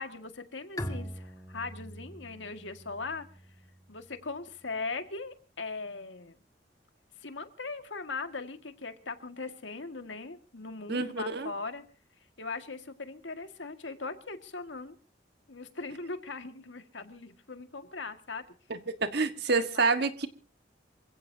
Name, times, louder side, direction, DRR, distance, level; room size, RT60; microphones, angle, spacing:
voice 1, 0.0-3.3 3.9-6.4 7.2-11.8 12.4-15.0 15.5-18.4 19.5-20.1, left 3 dB, 90° left, 1.9 m, -39 dB
Bowed string instrument, 0.8-4.3, equal, 20° left, 1.7 m, -42 dB
voice 2, 10.9-11.5 18.7-20.3, right 4 dB, 65° right, 1.5 m, -28 dB
27.5 x 16.5 x 2.8 m
head